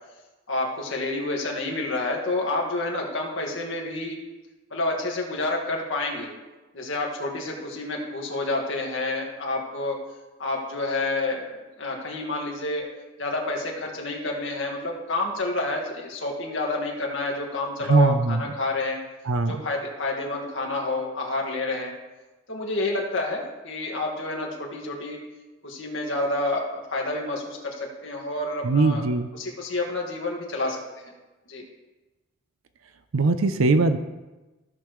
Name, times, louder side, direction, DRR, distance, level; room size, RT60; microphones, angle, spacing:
voice 1, 0.5-4.2 4.7-6.3 6.7-10.0 10.4-11.5 11.8-12.8 13.2-19.0 19.5-21.9 22.5-25.2 25.6-29.0 29.3-31.1 31.5-31.6, left 2 dB, 65° left, 0 dB, 1.9 m, -29 dB
voice 2, 17.9-18.4 19.3-19.5 28.6-29.3 33.1-34.0, right 3 dB, 70° right, 10 dB, 0.5 m, -20 dB
15.0 x 6.6 x 3.1 m, 1.1 s
head